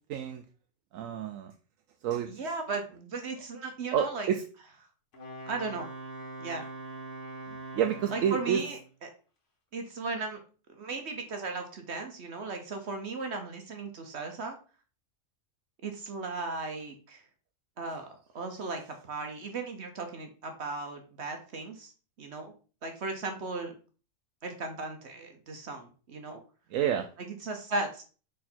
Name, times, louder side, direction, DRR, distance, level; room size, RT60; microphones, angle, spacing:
voice 1, 0.1-0.4 0.9-1.5 2.0-2.3 3.9-4.4 7.7-8.6 26.7-27.1, right 9 dB, 80° right, 6 dB, 1.0 m, -28 dB
voice 2, 2.3-4.3 5.5-5.9 6.4-6.7 8.1-9.1 9.7-10.4 10.7-14.6 15.8-17.2 17.8-18.1 18.3-21.9 22.2-22.5 22.8-23.8 24.4-26.4 27.2-28.0, right 3 dB, 60° right, 4 dB, 1.1 m, -36 dB
Wind instrument woodwind instrument, 5.1-8.9, right 2 dB, 65° left, 1.6 m, -42 dB
6.2 x 3.8 x 4.3 m, 0.38 s
omnidirectional pair, 1.4 m